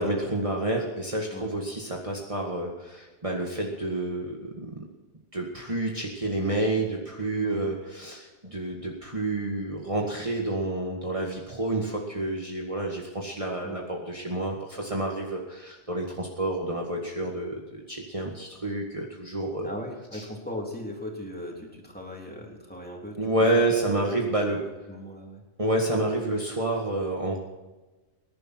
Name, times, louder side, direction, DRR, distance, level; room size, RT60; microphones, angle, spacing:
voice 1, 0.0-4.7 5.3-19.7 20.1-20.2 23.2-24.6 25.6-27.4, right 2 dB, 30° right, -1 dB, 1.9 m, -29 dB
voice 2, 19.6-24.2 24.6-25.4, equal, 10° left, -1 dB, 3.4 m, -38 dB
20.5 x 11.0 x 4.6 m, 1.2 s
omnidirectional pair, 1.2 m